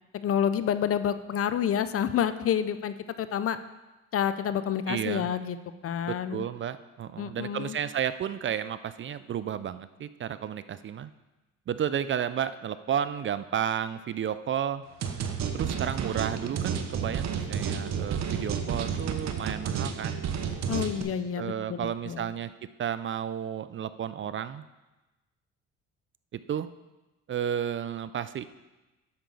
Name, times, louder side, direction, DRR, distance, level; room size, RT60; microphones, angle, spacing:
voice 1, 0.1-3.6 4.1-5.6 5.8-6.4 7.2-7.8 20.7-22.3, left 9 dB, 50° left, 12 dB, 0.5 m, -29 dB
voice 2, 4.9-5.3 6.1-11.1 11.7-14.8 15.5-20.2 21.4-22.5 22.8-24.6 26.3-26.7 27.3-28.5, right 9 dB, 40° right, 14 dB, 0.4 m, -32 dB
sound 1, 15.0-21.0, right 7 dB, 60° right, 0.9 m, -31 dB
9.7 x 6.9 x 3.9 m, 1.1 s
cardioid pair, 90°, 30 cm